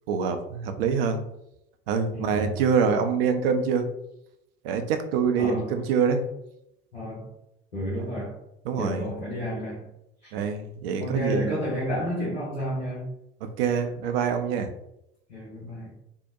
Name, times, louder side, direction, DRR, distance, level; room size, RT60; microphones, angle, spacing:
voice 1, 0.1-1.2 1.9-3.9 4.6-6.2 8.7-9.0 10.3-11.5 13.6-14.7, right 6 dB, 65° right, 7 dB, 0.5 m, -25 dB
voice 2, 2.1-2.6 5.4-5.8 6.9-7.3 7.7-8.4 8.8-9.9 10.2-10.3 11.0-13.1 15.3-15.9, equal, 90° left, -10 dB, 0.8 m, -31 dB
2.7 x 2.0 x 2.5 m, 0.82 s
figure-of-eight pair, 60°, 31 cm